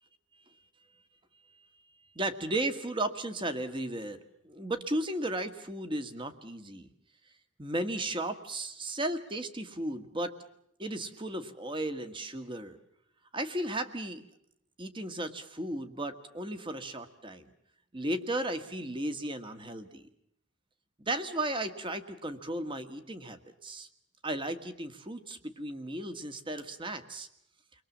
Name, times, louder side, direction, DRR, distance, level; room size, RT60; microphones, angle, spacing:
voice 1, 2.1-6.9 7.6-10.3 10.8-12.8 13.3-14.2 14.8-17.5 17.9-20.0 21.0-23.9 24.2-27.3, right 1 dB, 25° right, 9 dB, 1.6 m, -35 dB
30.0 x 22.0 x 7.3 m, 0.75 s
head